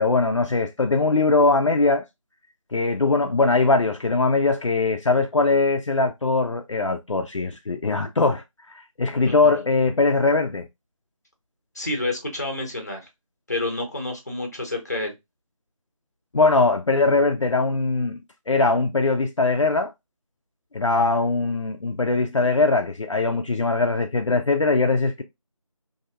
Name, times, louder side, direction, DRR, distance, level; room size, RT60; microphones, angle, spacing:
voice 1, 0.0-2.0 2.7-10.7 16.3-18.2 18.5-19.9 20.7-25.2, left 3 dB, 60° left, 0.4 m, -21 dB
voice 2, 9.1-9.5 11.7-13.1 13.5-15.1, left 2 dB, 30° left, 0.7 m, -29 dB
2.6 x 2.2 x 2.5 m
figure-of-eight pair, 165°, 17 cm